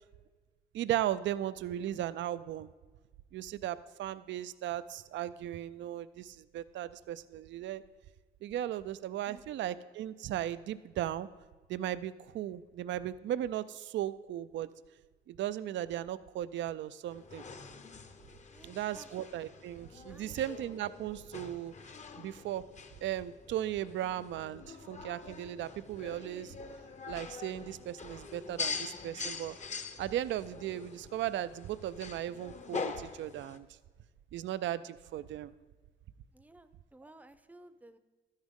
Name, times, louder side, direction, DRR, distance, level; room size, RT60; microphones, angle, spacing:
voice 1, 0.7-2.7 3.3-7.8 8.4-11.3 11.7-14.7 15.3-17.4 18.6-21.7 22.2-22.7 23.0-26.5 27.1-29.6 30.0-33.7 34.3-35.5, right 12 dB, 70° right, 14 dB, 0.5 m, -36 dB
voice 2, 9.2-9.8 18.5-19.1 20.1-20.4 36.3-38.0, right 2 dB, 10° right, 12 dB, 0.7 m, -56 dB
sound 1, 17.1-33.6, left 5 dB, 35° left, 0.9 m, -44 dB
12.5 x 9.9 x 3.7 m, 1.4 s
cardioid pair, 90°, 20 cm